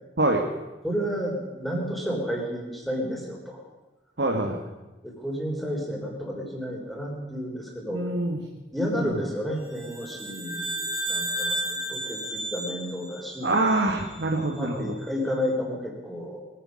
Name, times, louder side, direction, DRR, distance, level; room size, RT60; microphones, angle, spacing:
voice 1, 0.2-0.5 4.2-4.6 7.9-8.4 8.9-9.1 13.4-14.9, right 2 dB, 80° right, 1 dB, 1.6 m, -25 dB
voice 2, 0.8-3.6 5.0-8.0 8.7-13.6 14.6-16.4, equal, ahead, -1 dB, 3.6 m, -31 dB
sound 1, 9.7-14.2, right 1 dB, 30° right, 3.2 m, -33 dB
21.5 x 10.0 x 6.4 m, 1.1 s
head